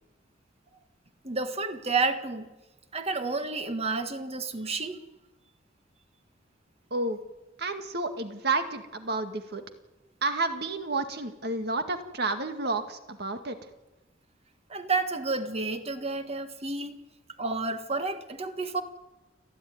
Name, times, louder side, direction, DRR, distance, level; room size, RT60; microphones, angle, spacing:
voice 1, 1.2-2.4 2.9-5.0 14.7-16.9 17.4-18.8, right 3 dB, 35° right, 9 dB, 1.6 m, -30 dB
voice 2, 7.6-9.6 10.2-13.7, right 3 dB, 60° right, 7 dB, 2.0 m, -30 dB
29.5 x 11.5 x 9.5 m, 1.1 s
head